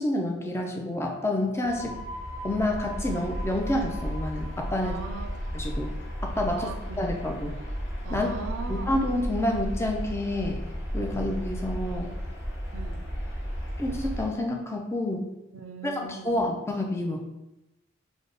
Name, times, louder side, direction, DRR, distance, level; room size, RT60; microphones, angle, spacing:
voice 1, 0.0-1.9 2.4-4.9 5.5-5.9 6.2-6.7 7.0-7.6 8.1-8.3 8.7-10.6 10.9-12.1 13.8-15.3 15.8-17.3, left 1 dB, 15° left, 1 dB, 0.4 m, -28 dB
sound 1, 1.4-8.9, equal, 30° left, 1.2 m, -45 dB
sound 2, 1.6-14.3, equal, 60° left, 0.8 m, -34 dB
voice 2, 1.7-2.1 4.8-5.4 6.5-7.1 8.0-9.1 12.7-13.1 15.5-16.4, right 5 dB, 75° right, 7 dB, 0.3 m, -40 dB
3.3 x 2.1 x 3.9 m, 0.96 s
head